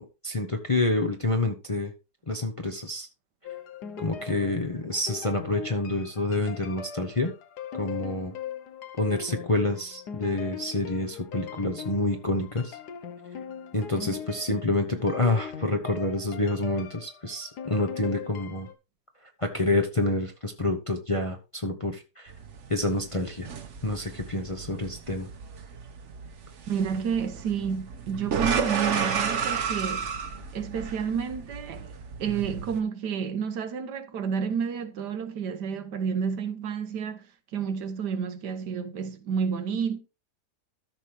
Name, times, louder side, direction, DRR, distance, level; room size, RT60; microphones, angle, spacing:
voice 1, 0.0-1.9 2.3-3.1 4.0-7.3 7.7-8.3 9.0-12.8 13.7-18.7 19.4-22.3 22.7-23.5 23.8-25.3, left 2 dB, 25° left, 0.7 m, -28 dB
sound 1, 3.4-18.7, left 7 dB, 75° left, 1.5 m, -40 dB
sound 2, 22.3-32.8, right 6 dB, 50° right, 1.1 m, -33 dB
voice 2, 26.7-30.1 30.5-31.9 32.2-40.0, right 7 dB, 80° right, 1.6 m, -30 dB
13.5 x 6.0 x 3.3 m
omnidirectional pair, 1.8 m